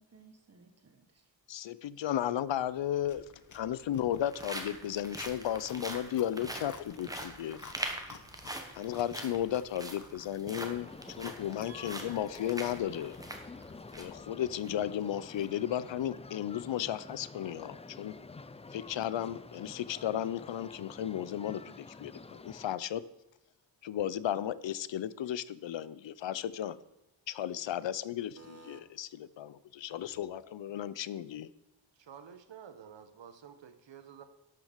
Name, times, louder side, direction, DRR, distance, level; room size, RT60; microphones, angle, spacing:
voice 1, 0.0-1.3 11.6-12.6 28.4-28.8, right 3 dB, 35° right, 6 dB, 1.5 m, -56 dB
voice 2, 1.5-3.3 3.5-7.6 8.7-13.2 13.9-18.2 18.7-23.0 23.8-26.8 27.3-31.5, left 11 dB, 75° left, 17 dB, 0.6 m, -34 dB
sound 1, 2.6-2.7 3.6-14.2 14.6-14.7 15.2-15.4, right 1 dB, 10° right, 1.3 m, -43 dB
Chewing mastication, 3.0-10.2, left 6 dB, 40° left, 0.9 m, -55 dB
sound 2, 10.5-22.8, left 3 dB, 15° left, 0.3 m, -49 dB
voice 3, 32.1-34.2, right 8 dB, 75° right, 10 dB, 1.2 m, -50 dB
12.0 x 6.3 x 6.6 m, 0.95 s
wide cardioid pair, 155°, 45 cm